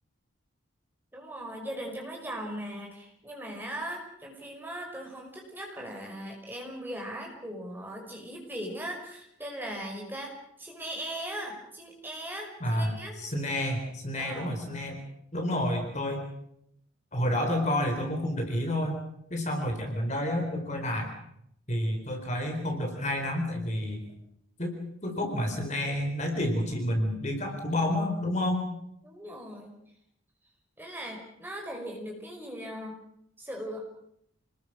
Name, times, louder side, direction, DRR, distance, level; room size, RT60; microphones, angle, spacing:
voice 1, 1.1-13.2 14.2-14.6 29.0-29.7 30.8-32.9 33.4-33.8, equal, 10° right, 1 dB, 5.6 m, -39 dB
voice 2, 12.6-15.0 15.3-16.3 17.1-19.0 19.3-21.1 21.7-24.1 24.6-24.8 25.0-28.7, left 1 dB, 35° left, 4 dB, 4.2 m, -29 dB
28.5 x 20.5 x 6.2 m, 0.73 s
head